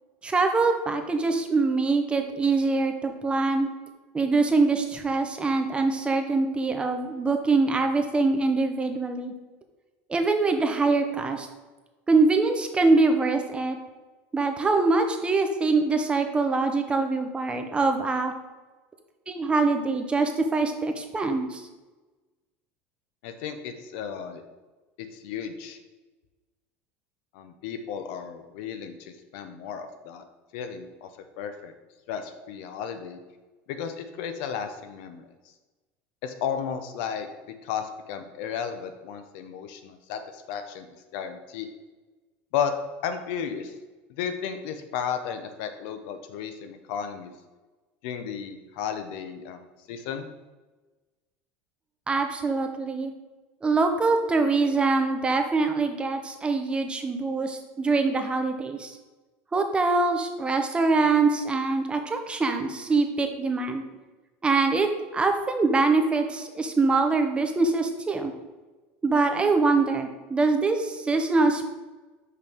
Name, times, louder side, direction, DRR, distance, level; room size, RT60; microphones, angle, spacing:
voice 1, 0.2-3.7 4.1-9.3 10.1-11.5 12.1-13.8 14.3-18.3 19.3-21.6 52.1-53.1 53.6-59.0 59.5-63.8 64.4-68.3 69.0-71.7, right 3 dB, 15° right, 5 dB, 0.7 m, -24 dB
voice 2, 23.2-24.4 25.0-25.8 27.3-30.2 30.5-31.1 31.4-31.7 32.1-33.2 33.7-35.2 36.2-37.3 37.6-40.9 41.1-41.7 42.5-42.7 43.0-43.7 44.1-47.3 48.0-50.3, left 7 dB, 75° left, 8 dB, 0.7 m, -34 dB
6.0 x 5.6 x 3.6 m, 1.2 s
supercardioid pair, 125°, 6 cm